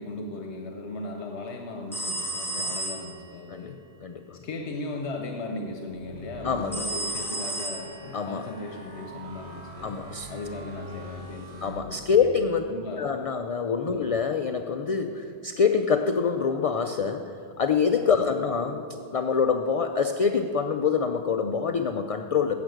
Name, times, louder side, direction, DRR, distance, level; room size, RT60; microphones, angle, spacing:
voice 1, 0.0-3.8 4.4-10.0 10.3-12.2 12.7-13.1 13.9-14.1 18.1-18.3, left 2 dB, 90° left, 3 dB, 1.1 m, -37 dB
sound 1, 1.9-3.3 6.7-8.3, right 1 dB, ahead, 0.9 m, -32 dB
voice 2, 3.5-4.4 6.4-6.8 8.1-8.4 9.8-10.3 11.6-12.6 13.0-17.3 17.6-18.9 19.1-22.5, left 6 dB, 55° left, 7 dB, 0.4 m, -25 dB
sound 2, 5.9-12.4, right 1 dB, 50° right, 2.3 m, -45 dB
11.0 x 7.5 x 7.8 m, 2.6 s
omnidirectional pair, 1.1 m